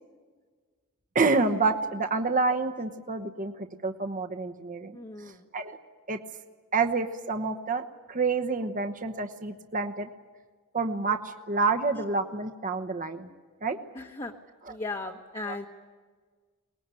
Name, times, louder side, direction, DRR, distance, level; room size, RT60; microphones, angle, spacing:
voice 1, 1.1-5.0 5.5-5.8 6.1-6.2 6.7-10.1 10.7-13.3 13.6-13.8 14.6-14.8 15.5-15.6, right 4 dB, 35° right, 6 dB, 1.0 m, -28 dB
voice 2, 4.9-5.4 13.9-14.3 14.7-15.7, left 3 dB, 25° left, 1 dB, 1.2 m, -37 dB
22.5 x 19.5 x 9.1 m, 1.5 s
head